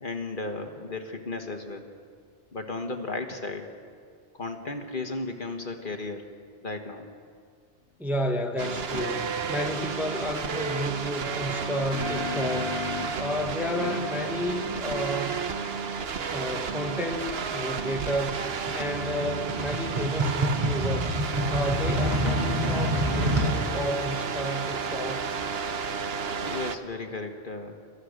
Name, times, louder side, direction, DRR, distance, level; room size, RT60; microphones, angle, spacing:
voice 1, 0.0-1.9 2.5-3.7 4.3-6.3 6.6-7.1 26.4-27.8, left 3 dB, 45° left, 5 dB, 1.6 m, -34 dB
voice 2, 8.0-12.8 13.1-15.5 16.3-18.4 18.7-21.1 21.5-25.3, equal, ahead, 3 dB, 1.0 m, -31 dB
sound 1, 8.6-26.8, right 5 dB, 60° right, 1.1 m, -32 dB
sound 2, 8.9-9.1 11.5-13.3 13.8-17.1, left 5 dB, 70° left, 1.6 m, -38 dB
sound 3, 17.9-23.5, equal, 40° right, 5.0 m, -28 dB
29.0 x 14.5 x 6.6 m, 2.1 s
omnidirectional pair, 1.2 m